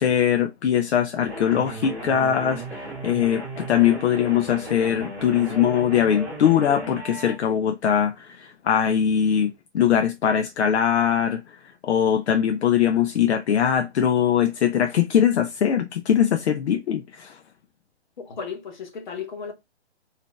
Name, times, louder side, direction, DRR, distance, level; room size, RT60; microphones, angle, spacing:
voice 1, 0.0-11.6 11.8-17.4, left 9 dB, 75° left, 0.5 m, -21 dB
sound 1, 1.3-7.3, right 1 dB, 5° right, 0.5 m, -35 dB
voice 2, 18.3-19.5, left 6 dB, 45° left, 0.8 m, -34 dB
2.7 x 2.3 x 3.7 m
hypercardioid pair, 155°, 33 cm